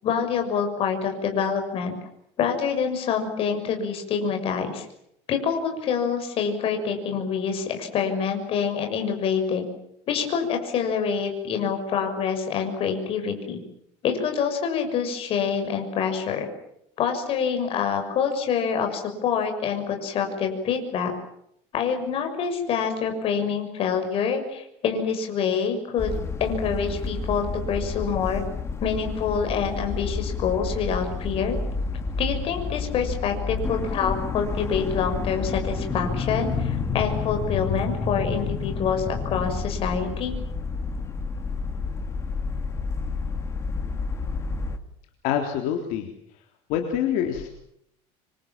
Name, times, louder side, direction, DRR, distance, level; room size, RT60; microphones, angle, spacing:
voice 1, 0.0-2.0 2.4-4.9 5.3-9.6 10.1-13.6 14.0-16.5 17.0-21.1 21.7-28.4 28.8-31.6 32.2-40.4, left 6 dB, 40° left, 5 dB, 6.4 m, -26 dB
sound 1, 26.0-44.8, left 4 dB, 20° left, 2.2 m, -29 dB
voice 2, 45.2-46.1 46.7-47.5, left 9 dB, 65° left, 4 dB, 3.6 m, -25 dB
27.0 x 25.5 x 7.5 m, 0.75 s
cardioid pair, 155°, 14 cm